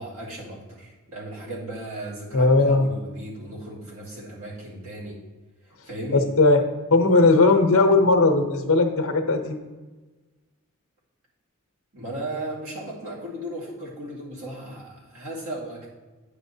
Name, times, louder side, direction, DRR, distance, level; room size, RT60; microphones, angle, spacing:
voice 1, 0.0-5.2 5.6-6.3 11.9-15.9, right 1 dB, 65° right, -7 dB, 2.5 m, -36 dB
voice 2, 2.3-2.9 6.1-6.6 6.9-9.6, left 3 dB, 65° left, 5 dB, 0.8 m, -18 dB
9.6 x 7.3 x 2.8 m, 1.3 s
head